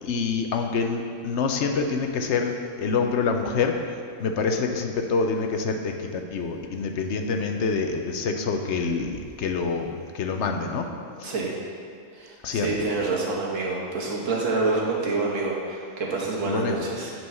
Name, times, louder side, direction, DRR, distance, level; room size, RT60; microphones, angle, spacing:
voice 1, 0.0-3.7 4.2-10.9 11.2-11.3 12.4-12.8 16.5-16.8, left 4 dB, 65° left, 4 dB, 0.9 m, -26 dB
voice 2, 12.1-17.1, right 3 dB, 70° right, -3 dB, 1.7 m, -27 dB
9.4 x 4.7 x 5.5 m, 2.3 s
omnidirectional pair, 1.4 m